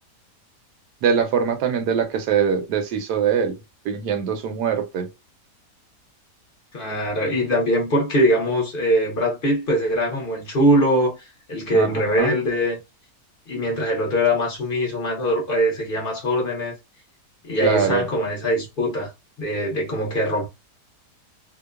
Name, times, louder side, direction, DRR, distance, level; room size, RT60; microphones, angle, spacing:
voice 1, 1.0-3.6 3.8-5.1 11.7-12.4 17.6-18.1, right 7 dB, 80° right, 1.2 m, -22 dB
voice 2, 6.7-12.8 13.5-16.7 17.4-19.1 19.4-20.5, equal, 55° left, 0.6 m, -22 dB
2.9 x 2.0 x 2.2 m
omnidirectional pair, 1.8 m